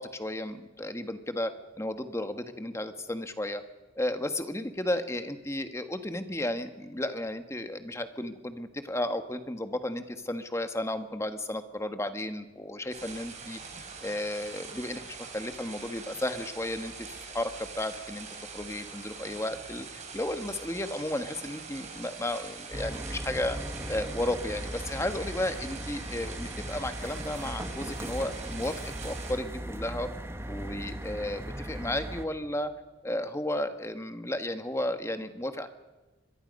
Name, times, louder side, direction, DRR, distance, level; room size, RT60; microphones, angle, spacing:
voice 1, 0.0-3.6 3.9-13.6 14.0-17.1 17.3-18.3 18.5-23.6 23.9-30.1 30.5-32.7 33.0-35.7, left 1 dB, 15° left, 8 dB, 1.4 m, -33 dB
sound 1, 12.9-29.3, right 5 dB, 40° right, 4.0 m, -43 dB
sound 2, 22.7-32.2, right 1 dB, 15° right, 1.4 m, -38 dB
25.5 x 22.0 x 5.4 m, 1.2 s
head